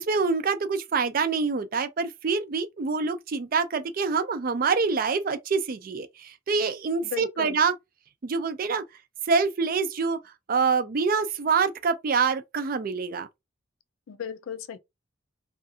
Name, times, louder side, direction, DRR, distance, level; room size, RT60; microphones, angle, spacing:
voice 1, 0.0-7.7 8.2-8.8 9.2-13.3, right 5 dB, 45° right, 0.4 m, -26 dB
voice 2, 7.0-7.6 14.1-14.8, left 8 dB, 90° left, 0.4 m, -35 dB
2.5 x 2.4 x 2.6 m
head